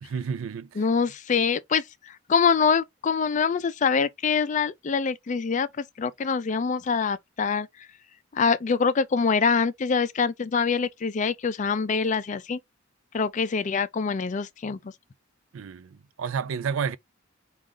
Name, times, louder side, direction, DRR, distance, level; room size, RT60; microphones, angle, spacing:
voice 1, 0.0-0.8 15.5-17.0, right 6 dB, 80° right, 0.4 m, -31 dB
voice 2, 0.8-7.7 8.3-12.6 13.1-14.8, left 5 dB, 35° left, 0.4 m, -25 dB
4.9 x 2.4 x 3.7 m
head